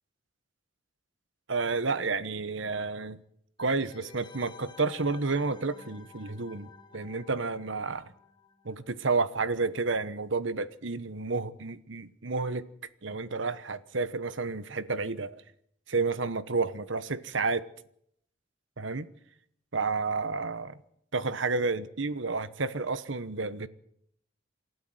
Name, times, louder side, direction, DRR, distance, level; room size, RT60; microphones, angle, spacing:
voice 1, 1.5-3.2 3.6-8.1 8.6-12.6 13.0-15.4 15.9-17.6 18.8-19.1 19.7-20.8 21.1-23.7, right 4 dB, 75° right, 1.1 m, -30 dB
sound 1, 3.6-9.1 9.3-9.4, left 6 dB, 25° left, 1.7 m, -52 dB
28.0 x 12.5 x 7.9 m
head